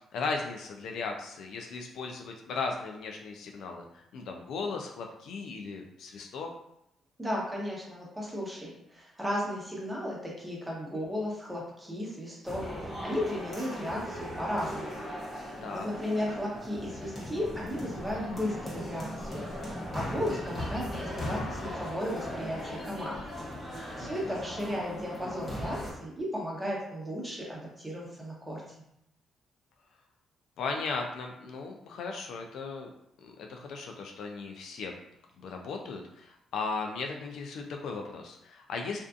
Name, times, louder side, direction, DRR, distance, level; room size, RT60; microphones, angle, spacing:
voice 1, 0.1-6.5 15.6-15.9 24.0-24.3 30.6-32.9 33.2-34.9 35.4-39.0, left 4 dB, 75° left, 2 dB, 0.3 m, -37 dB
voice 2, 7.2-15.0 15.4-23.2 23.7-28.6, equal, 10° right, -4 dB, 0.8 m, -35 dB
sound 1, 12.4-25.9, equal, 30° left, 0.9 m, -38 dB
2.5 x 2.4 x 2.3 m, 0.79 s
cardioid pair, 90°, 0 cm